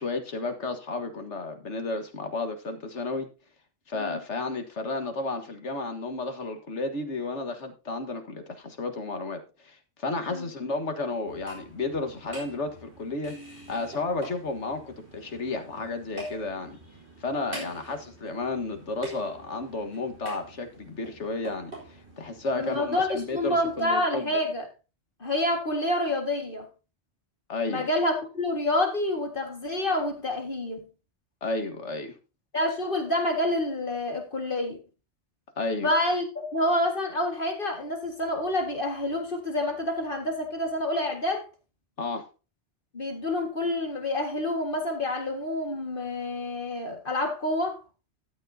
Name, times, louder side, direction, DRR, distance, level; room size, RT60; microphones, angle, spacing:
voice 1, 0.0-3.3 3.9-16.8 17.2-21.7 22.2-24.3 27.5-27.9 31.4-32.2 35.6-35.9 42.0-42.2, left 3 dB, 80° left, 1.9 m, -32 dB
sound 1, 11.2-23.9, right 1 dB, 65° right, 4.6 m, -45 dB
voice 2, 22.6-24.7 25.2-26.6 27.7-30.8 32.5-34.8 35.8-41.4 42.9-47.8, left 1 dB, 50° left, 2.1 m, -28 dB
13.0 x 9.5 x 2.8 m
omnidirectional pair, 1.2 m